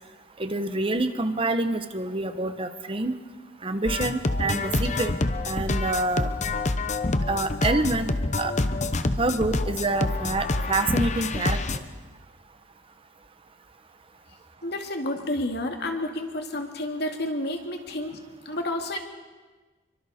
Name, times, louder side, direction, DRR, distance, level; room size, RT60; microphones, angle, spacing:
voice 1, 0.4-3.2 3.6-5.2 5.4-6.3 7.3-8.5 9.2-11.6, right 2 dB, 30° right, 9 dB, 0.9 m, -27 dB
sound 1, 3.9-11.8, left 2 dB, 40° left, 0.9 m, -27 dB
voice 2, 14.6-18.2 18.5-19.0, left 1 dB, 60° left, 4 dB, 2.3 m, -30 dB
27.5 x 24.5 x 4.3 m, 1.3 s
head